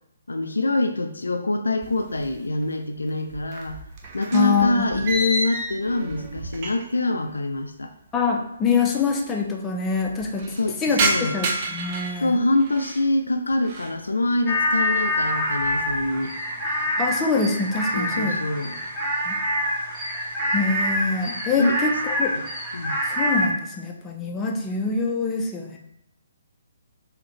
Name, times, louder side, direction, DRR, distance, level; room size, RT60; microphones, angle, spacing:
voice 1, 0.3-3.8 4.1-7.9 10.5-11.4 12.2-16.3 17.9-18.8 21.6-21.8 22.3-22.4 22.7-23.0, left 2 dB, 80° left, 6 dB, 0.4 m, -25 dB
sound 1, 1.8-2.7 3.0-7.1 7.3-7.4 8.3-8.4 8.6-8.7 9.0-9.5 9.9-13.1 13.5-14.0 14.5-14.8 15.3-16.2, right 2 dB, 35° right, 0.6 m, -31 dB
voice 2, 4.3-5.0 8.1-10.5 10.8-11.0 11.3-12.4 17.0-18.4 19.3-19.4 20.5-22.3 23.1-25.8, left 4 dB, 15° left, 1 dB, 0.6 m, -25 dB
sound 2, 14.5-23.5, equal, 5° right, 1.3 m, -26 dB
3.8 x 2.8 x 3.2 m, 0.78 s
figure-of-eight pair, 135°, 0 cm